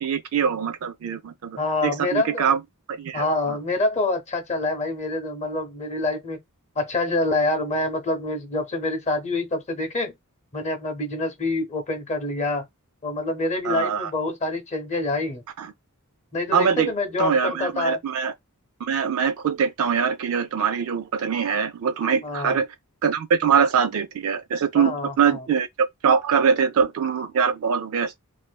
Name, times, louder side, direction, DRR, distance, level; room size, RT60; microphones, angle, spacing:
voice 1, 0.0-2.6 2.9-3.6 13.6-14.1 15.6-15.7 16.5-16.9 17.2-18.3 18.8-22.7 23.0-28.2, right 6 dB, 65° right, 0.4 m, -23 dB
voice 2, 1.6-2.5 3.1-6.4 6.8-10.1 10.5-12.7 13.0-15.4 16.3-18.0 22.2-22.6 24.8-25.4, left 2 dB, 30° left, 0.6 m, -26 dB
2.5 x 2.4 x 2.2 m
head